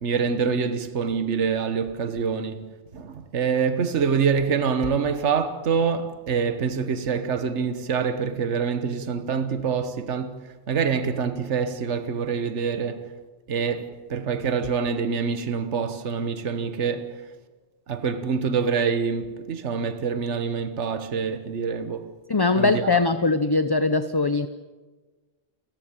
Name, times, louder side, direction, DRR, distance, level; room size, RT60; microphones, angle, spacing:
voice 1, 0.0-13.1 13.5-17.2 17.9-22.1 22.5-22.9, right 6 dB, 70° right, 1.6 m, -26 dB
voice 2, 22.3-24.5, left 3 dB, 25° left, 0.6 m, -21 dB
29.0 x 15.0 x 9.0 m
omnidirectional pair, 1.2 m